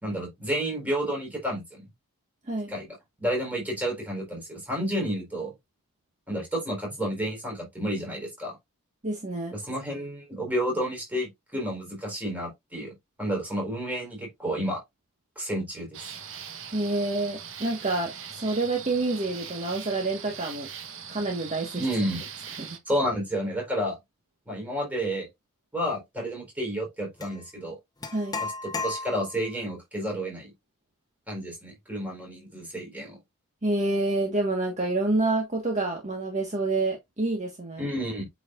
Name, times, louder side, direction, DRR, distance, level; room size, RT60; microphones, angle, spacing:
voice 1, 0.0-1.9 2.7-5.5 6.3-8.6 9.5-12.9 13.2-14.8 15.4-16.0 21.8-22.3 22.9-24.0 24.5-25.3 25.7-27.8 28.4-30.5 31.3-33.2 37.8-38.3, equal, 5° right, 4.1 m, -31 dB
voice 2, 9.0-9.5 16.7-20.7 21.1-21.8 22.6-22.8 28.1-28.4 33.6-37.8, right 2 dB, 30° right, 1.5 m, -28 dB
sound 1, 15.9-22.8, right 7 dB, 60° right, 1.3 m, -41 dB
sound 2, 27.2-27.4 28.0-29.5, left 4 dB, 20° left, 1.0 m, -34 dB
8.4 x 4.9 x 2.5 m
head